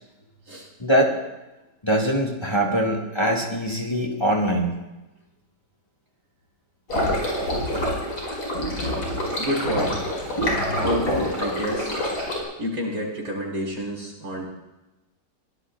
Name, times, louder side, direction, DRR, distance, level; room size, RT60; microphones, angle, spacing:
voice 1, 0.8-1.2 1.8-4.7 7.5-7.7, right 1 dB, 15° left, 0 dB, 2.1 m, -23 dB
sound 1, 6.9-12.4, left 1 dB, 80° left, 6.0 m, -26 dB
voice 2, 9.4-10.0 10.7-11.9 12.6-14.5, equal, 85° right, -3 dB, 5.1 m, -28 dB
22.5 x 17.5 x 2.5 m, 1.0 s
omnidirectional pair, 1.8 m